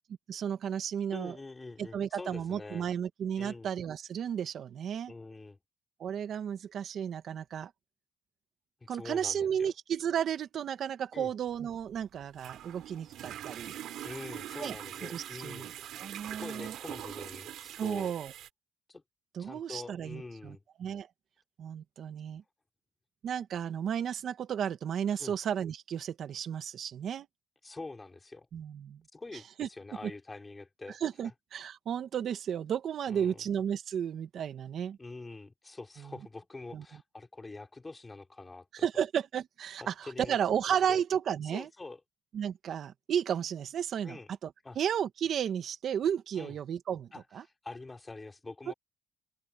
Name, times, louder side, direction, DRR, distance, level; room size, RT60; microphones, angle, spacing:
voice 1, 0.3-1.4 1.8-5.1 6.0-7.7 8.9-13.8 14.6-14.8 15.1-16.7 17.8-18.3 19.3-21.1 21.6-22.4 23.2-27.3 28.5-29.0 29.6-29.7 30.0-30.1 30.9-35.0 36.0-36.1 36.7-36.8 38.7-41.7 42.3-44.2 44.4-44.5 44.8-47.4 48.7-48.8, right 8 dB, 65° right, 1.8 m, -33 dB
voice 2, 1.1-2.9 3.4-3.7 5.1-5.6 8.8-9.7 11.1-11.3 14.0-15.9 16.3-18.1 18.9-19.0 19.4-20.6 25.2-25.3 27.6-28.5 29.1-31.0 33.1-33.4 35.0-38.9 39.8-40.4 40.9-41.0 41.5-42.0 44.0-44.3 44.6-44.8 46.4-46.5 47.1-48.7, left 3 dB, 20° left, 4.0 m, -45 dB
sound 1, 11.5-18.5, right 12 dB, 80° right, 3.4 m, -43 dB
open air
cardioid pair, 90°, 0 cm